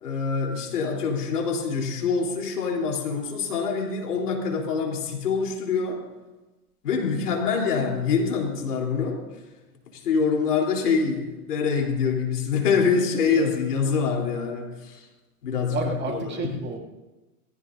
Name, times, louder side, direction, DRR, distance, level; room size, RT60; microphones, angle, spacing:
voice 1, 0.0-6.0 6.8-9.2 9.9-15.1 15.4-16.6, left 5 dB, 80° left, 1 dB, 3.9 m, -25 dB
voice 2, 15.7-16.8, right 4 dB, 20° right, 0 dB, 2.5 m, -31 dB
20.5 x 15.5 x 2.7 m, 1.1 s
hypercardioid pair, 120°, 46 cm